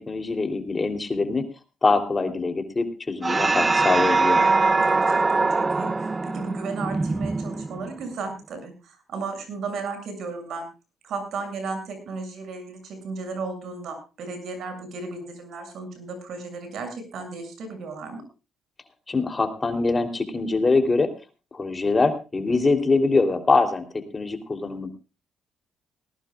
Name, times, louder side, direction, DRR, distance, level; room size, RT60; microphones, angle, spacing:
voice 1, 0.0-1.5 1.8-4.4 19.1-21.1 21.5-24.9, left 3 dB, 25° left, 6 dB, 3.3 m, -23 dB
sound 1, 3.2-8.0, right 3 dB, 25° right, 0.7 m, -22 dB
voice 2, 4.4-10.7 11.0-18.2, right 4 dB, 70° right, 7 dB, 7.1 m, -35 dB
19.5 x 18.5 x 2.4 m, 0.32 s
cardioid pair, 90°, 0 cm